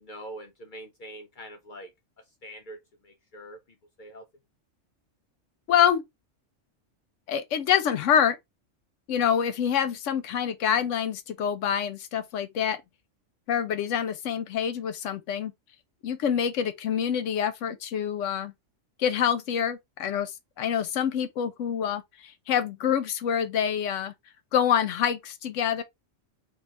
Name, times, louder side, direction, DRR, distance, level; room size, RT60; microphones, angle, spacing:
voice 1, 0.0-1.9 2.4-2.8 3.0-3.6 4.0-4.2, right 1 dB, 60° left, 0.5 m, -43 dB
voice 2, 5.7-6.0 7.3-8.4 9.1-12.8 13.5-15.5 16.0-18.5 19.0-20.3 20.6-24.1 24.5-25.8, left 8 dB, 75° left, 0.9 m, -26 dB
2.6 x 2.3 x 3.9 m
omnidirectional pair, 1.3 m